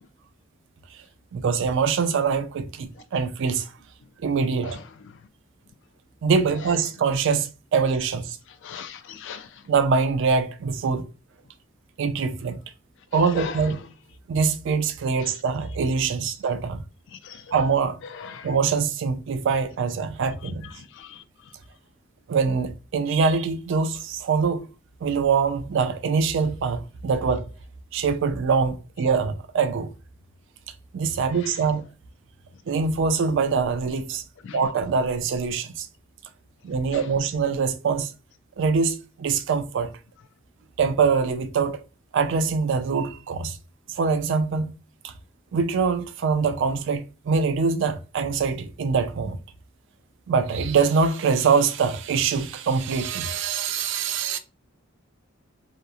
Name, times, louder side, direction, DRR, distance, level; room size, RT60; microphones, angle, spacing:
voice 1, 1.3-3.7 4.2-4.8 6.2-8.4 9.7-11.1 12.0-12.6 13.1-13.8 14.3-16.8 17.5-18.0 18.4-20.7 22.3-24.6 25.0-27.5 27.9-29.9 30.9-31.8 32.7-34.2 34.5-35.9 36.6-38.1 38.6-39.9 40.8-41.8 42.1-43.6 43.9-44.7 45.0-45.1 45.5-49.4 50.3-54.4, right 5 dB, 60° right, 0.4 m, -24 dB
voice 2, 8.6-9.5 13.3-13.5 17.2-17.4 18.2-18.5 21.0-21.2 34.4-34.6, left 7 dB, 60° left, 0.3 m, -37 dB
2.8 x 2.0 x 2.3 m
head